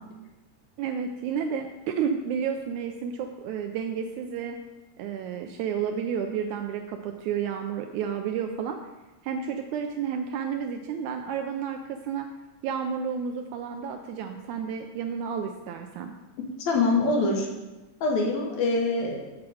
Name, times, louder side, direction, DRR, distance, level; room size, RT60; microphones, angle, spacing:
voice 1, 0.8-4.6 5.0-8.8 9.2-12.3 12.6-16.1, right 7 dB, 80° right, 5 dB, 1.7 m, -31 dB
voice 2, 16.7-17.5 18.0-19.2, left 3 dB, 65° left, 0 dB, 2.1 m, -24 dB
7.3 x 6.1 x 4.8 m, 1.1 s
omnidirectional pair, 3.8 m